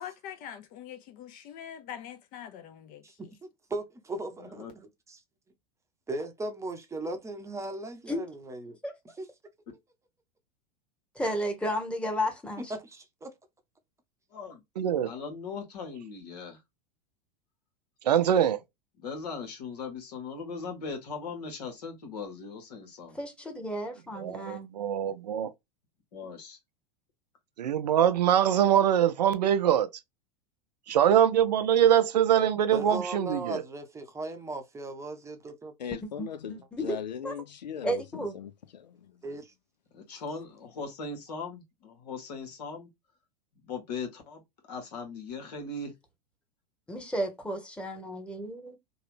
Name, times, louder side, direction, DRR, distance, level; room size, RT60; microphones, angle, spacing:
voice 1, 0.0-3.3, left 9 dB, 40° left, 0.6 m, -44 dB
voice 2, 3.7-5.2 6.1-8.8 9.2-9.3 12.6-13.3 32.7-35.7 39.2-39.5, right 2 dB, 15° right, 0.7 m, -37 dB
voice 3, 4.4-4.7 14.3-14.6 15.0-16.6 19.0-23.2 26.1-26.6 39.9-42.9 43.6-44.4 44.7-45.9, left 4 dB, 70° left, 1.4 m, -39 dB
voice 4, 11.1-12.7 23.1-24.7 36.2-37.0 37.2-37.3 37.8-38.3 46.9-48.7, equal, 5° left, 1.1 m, -33 dB
voice 5, 14.8-15.1 18.0-18.6 24.2-25.5 27.6-29.9 30.9-33.6, right 10 dB, 75° right, 0.5 m, -23 dB
voice 6, 35.8-39.2, left 8 dB, 85° left, 0.4 m, -39 dB
3.0 x 2.3 x 3.1 m
hypercardioid pair, 90°, 21 cm